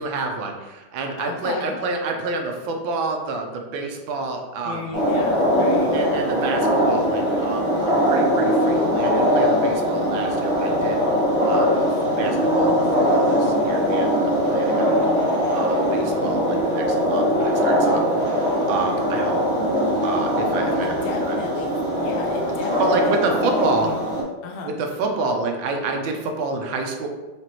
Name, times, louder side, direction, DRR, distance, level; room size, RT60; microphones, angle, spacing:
voice 1, 0.0-4.9 5.9-11.0 11.4-11.9 12.2-15.1 15.5-19.4 20.0-21.4 22.8-23.9 24.7-27.1, right 3 dB, 80° right, 3 dB, 1.4 m, -28 dB
voice 2, 1.2-1.8 4.6-6.0 20.5-21.7 22.0-24.0 24.4-24.7, left 4 dB, 85° left, 2 dB, 1.4 m, -34 dB
sound 1, 4.9-24.2, equal, 5° left, 0.9 m, -21 dB
5.1 x 2.9 x 2.9 m, 1.1 s
omnidirectional pair, 2.2 m